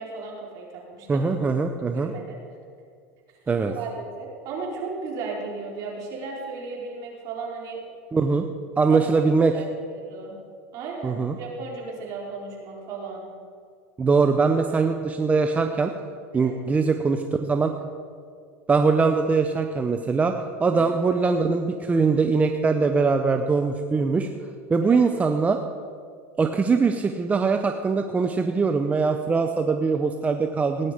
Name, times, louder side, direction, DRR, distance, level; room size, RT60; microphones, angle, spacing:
voice 1, 0.0-1.3 1.9-2.4 3.7-7.8 8.9-9.1 9.5-9.6 9.9-10.4 10.7-13.3 16.3-16.6 20.7-20.9 24.8-25.0, right 4 dB, 55° right, -2 dB, 4.4 m, -35 dB
voice 2, 1.1-2.1 3.5-3.7 8.1-8.5 8.8-9.5 11.0-11.3 14.0-15.9 16.3-17.7 18.7-20.3 20.6-24.3 24.7-25.6 26.4-30.9, right 4 dB, 20° right, 6 dB, 0.8 m, -22 dB
17.5 x 9.9 x 5.1 m, 2.2 s
supercardioid pair, 105°, 7 cm